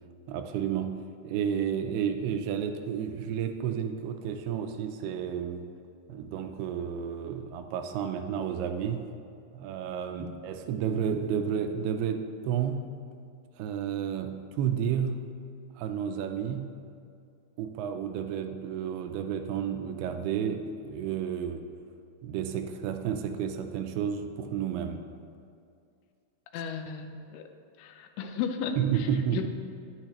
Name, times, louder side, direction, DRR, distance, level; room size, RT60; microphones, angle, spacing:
voice 1, 0.3-1.0 1.2-5.7 6.1-9.1 9.5-13.0 13.6-15.4 15.8-16.7 17.6-21.6 22.2-25.1 28.8-29.5, right 8 dB, 85° right, 7 dB, 2.5 m, -31 dB
voice 2, 26.5-27.4 27.8-29.5, left 7 dB, 85° left, 6 dB, 2.5 m, -35 dB
10.5 x 9.8 x 2.9 m, 2.4 s
omnidirectional pair, 4.6 m